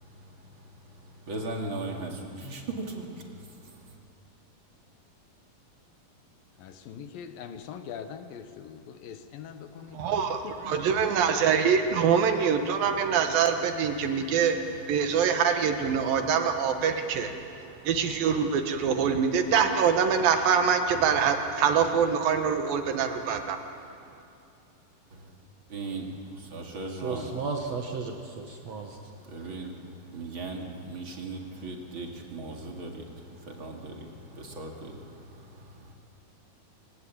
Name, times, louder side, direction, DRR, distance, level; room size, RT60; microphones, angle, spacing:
voice 1, 1.2-3.2 25.7-27.3 29.2-35.9, right 2 dB, 40° right, 1 dB, 2.7 m, -38 dB
voice 2, 6.6-11.4, left 7 dB, 75° left, 8 dB, 2.7 m, -43 dB
voice 3, 9.9-17.4 17.8-23.6, right 7 dB, 75° right, 6 dB, 3.0 m, -24 dB
voice 4, 26.9-29.0, right 4 dB, 55° right, 3 dB, 2.1 m, -34 dB
26.0 x 19.0 x 8.6 m, 2.6 s
omnidirectional pair, 4.3 m